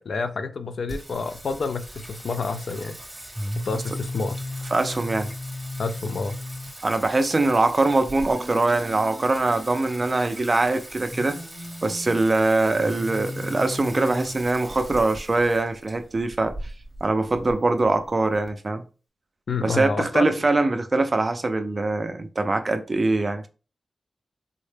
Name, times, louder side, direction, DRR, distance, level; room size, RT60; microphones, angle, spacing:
voice 1, 0.1-3.0 3.7-4.3 5.8-6.4 19.5-20.2, left 4 dB, 70° left, 0.3 m, -28 dB
Singing, 0.9-18.5, left 1 dB, 5° right, 0.9 m, -37 dB
voice 2, 4.7-5.3 6.8-11.4 11.8-16.5 17.0-18.8 19.6-23.5, right 2 dB, 30° right, 0.4 m, -23 dB
3.7 x 2.1 x 3.2 m
wide cardioid pair, 140°, 0 cm